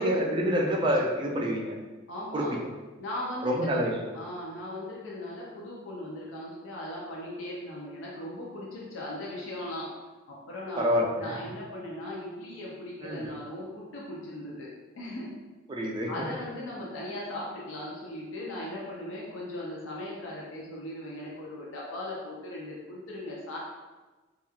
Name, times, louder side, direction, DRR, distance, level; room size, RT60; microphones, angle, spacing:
voice 1, 0.0-1.7 2.3-2.6 3.4-3.9 10.8-11.3 13.0-13.3 15.7-16.3, equal, 25° right, -1 dB, 0.3 m, -27 dB
voice 2, 2.1-2.5 3.0-9.9 10.3-14.7 15.0-15.3 16.1-23.6, left 1 dB, 70° left, -4 dB, 0.5 m, -38 dB
2.9 x 2.3 x 2.3 m, 1.2 s
head